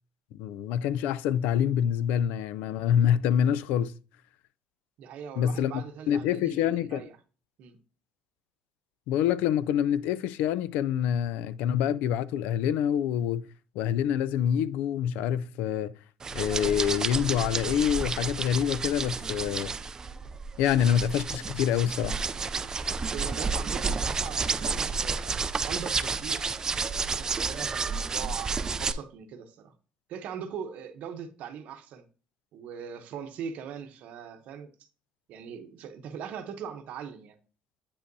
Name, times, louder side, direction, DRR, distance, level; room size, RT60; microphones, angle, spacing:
voice 1, 0.3-4.0 5.4-7.0 9.1-13.5 13.8-15.9 16.3-19.8 20.6-22.2, left 9 dB, 80° left, 0.3 m, -26 dB
voice 2, 5.0-7.2 7.6-7.8 23.1-25.4 25.6-29.7 30.1-32.1 32.5-34.7 35.3-37.4, right 7 dB, 60° right, 0.8 m, -41 dB
sound 1, 16.2-28.9, right 5 dB, 25° right, 0.4 m, -31 dB
8.5 x 5.2 x 2.7 m
cardioid pair, 120°, 3 cm